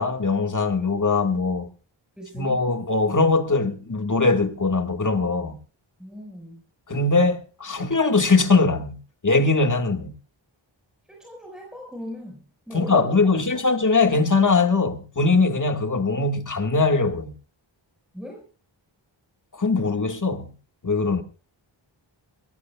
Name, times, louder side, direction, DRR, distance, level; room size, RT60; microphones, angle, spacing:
voice 1, 0.0-1.7 2.3-5.6 6.9-10.2 12.7-17.3 19.5-20.5 20.8-21.2, left 3 dB, 40° left, 1.8 m, -21 dB
voice 2, 2.2-2.6 6.0-6.6 11.1-13.7 18.1-18.4, equal, ahead, 5.1 m, -39 dB
23.0 x 17.5 x 2.4 m
wide cardioid pair, 70°, 47 cm